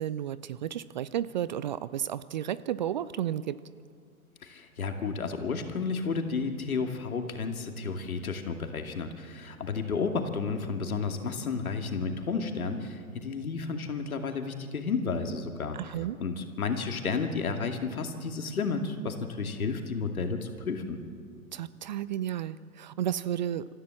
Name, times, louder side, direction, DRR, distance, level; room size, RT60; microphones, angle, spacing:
voice 1, 0.0-3.6 15.7-16.2 21.5-23.7, right 11 dB, 35° right, 17 dB, 0.4 m, -32 dB
voice 2, 4.4-15.8 16.2-21.0, left 4 dB, 70° left, 5 dB, 2.6 m, -32 dB
26.0 x 15.0 x 7.3 m, 2.2 s
figure-of-eight pair, 115°, 44 cm